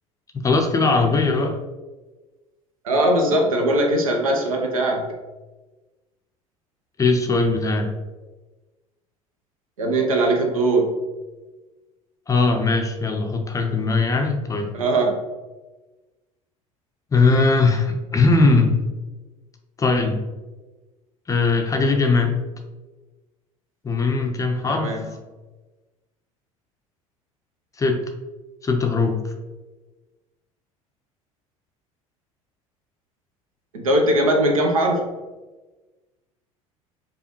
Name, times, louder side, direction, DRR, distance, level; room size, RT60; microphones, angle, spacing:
voice 1, 0.3-1.6 7.0-7.9 12.3-14.7 17.1-18.9 19.8-20.2 21.3-22.4 23.8-24.9 27.8-28.0 28.6-29.3, left 3 dB, 20° left, 3 dB, 0.5 m, -20 dB
voice 2, 2.8-5.1 9.8-11.0 14.7-15.2 24.7-25.0 33.7-35.1, right 1 dB, 75° right, 2 dB, 0.6 m, -20 dB
5.0 x 2.3 x 3.0 m, 1.2 s
figure-of-eight pair, 65°, 18 cm